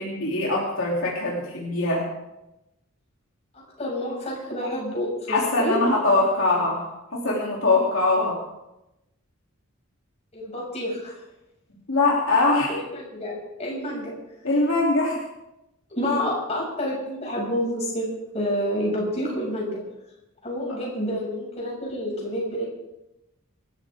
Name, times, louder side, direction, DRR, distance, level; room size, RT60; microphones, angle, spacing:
voice 1, 0.0-2.0 5.3-6.8 7.1-8.4 11.9-12.7 14.4-15.2, left 2 dB, 65° left, -4 dB, 3.3 m, -22 dB
voice 2, 3.8-5.8 10.3-11.1 12.7-14.1 15.9-18.1 18.3-19.8 20.4-22.7, equal, 30° left, -3 dB, 6.8 m, -28 dB
26.0 x 14.0 x 3.7 m, 0.93 s
head